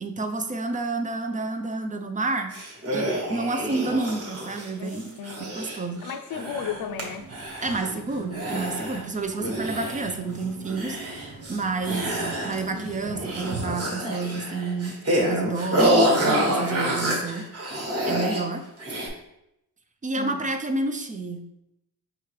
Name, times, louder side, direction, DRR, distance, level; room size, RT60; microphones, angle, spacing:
voice 1, 0.0-2.5 2.9-5.1 5.4-6.0 7.6-12.1 12.4-17.5 18.1-18.6 20.0-21.5, right 3 dB, 20° right, 6 dB, 0.4 m, -30 dB
sound 1, 2.5-7.0 7.3-8.0 8.3-9.0 9.4-10.3 10.6-11.6 11.8-12.8 13.1-18.4 18.8-19.1, equal, 35° right, 1.2 m, -27 dB
voice 2, 4.8-5.6 6.0-7.3 20.2-20.5, left 7 dB, 60° left, 7 dB, 0.5 m, -35 dB
sound 2, 6.4-13.7, right 3 dB, 75° right, 1.0 m, -40 dB
4.9 x 2.8 x 3.1 m, 0.83 s
cardioid pair, 110°, 39 cm